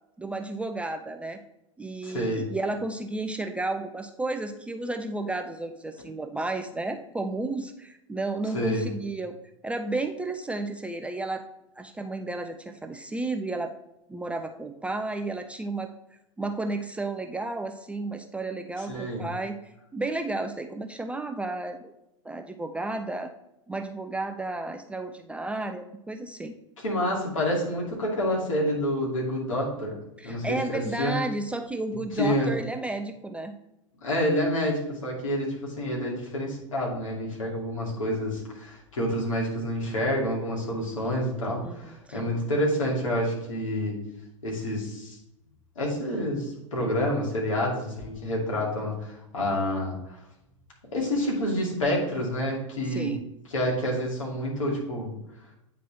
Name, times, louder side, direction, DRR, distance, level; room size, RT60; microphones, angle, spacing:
voice 1, 0.2-1.4 1.8-9.4 9.6-11.4 11.8-13.7 14.1-15.9 16.4-21.9 22.2-23.3 23.7-26.5 30.2-33.5 41.6-42.2 52.9-53.2, right 2 dB, 5° right, 6 dB, 0.4 m, -32 dB
voice 2, 2.0-2.5 8.5-8.9 18.8-19.3 26.8-29.9 30.2-31.2 32.1-32.5 34.0-44.0 44.4-45.2 45.8-50.2 50.9-53.2 53.5-55.2, equal, 75° left, -3 dB, 2.4 m, -28 dB
9.0 x 3.9 x 3.3 m, 0.87 s
figure-of-eight pair, 95°, 17 cm